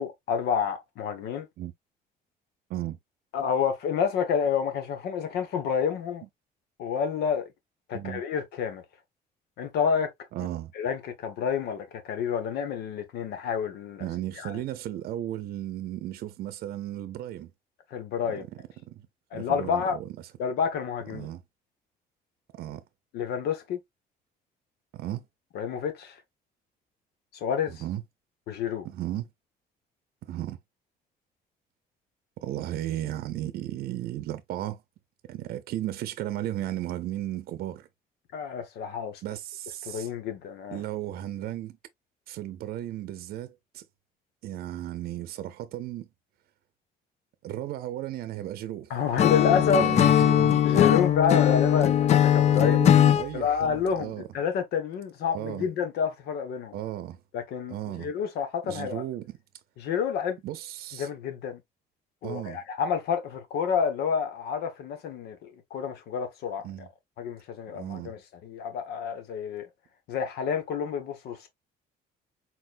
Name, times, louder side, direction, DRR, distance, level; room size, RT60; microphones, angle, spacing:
voice 1, 0.0-1.5 3.3-6.2 6.8-7.5 7.9-8.8 9.6-10.1 10.8-14.0 14.4-14.5 17.9-18.4 19.3-20.0 20.4-21.3 23.1-23.8 25.5-26.2 27.3-27.8 28.5-28.8 38.3-39.2 39.8-40.8 48.9-49.9 50.6-52.8 53.3-56.7 57.3-59.0 59.8-60.4 61.0-61.6 62.2-66.6 67.2-69.7 70.1-71.5, left 7 dB, 90° left, 1.3 m, -29 dB
voice 2, 10.3-10.7 14.0-17.5 18.3-19.0 19.3-20.3 21.1-21.4 22.5-22.8 24.9-25.2 27.7-28.0 28.8-29.3 30.2-30.6 32.4-34.8 35.3-37.9 39.2-40.1 40.7-41.8 42.3-43.8 44.4-46.1 47.4-48.9 49.2-51.0 52.4-54.3 55.3-55.7 56.7-57.2 57.7-58.1 58.6-59.4 60.4-61.1 62.2-62.6 66.6-66.9 67.7-68.1, right 13 dB, 70° right, 0.6 m, -35 dB
Acoustic guitar / Strum, 49.2-53.3, left 10 dB, 45° left, 0.4 m, -20 dB
4.4 x 4.0 x 2.5 m
cardioid pair, 150°, 16 cm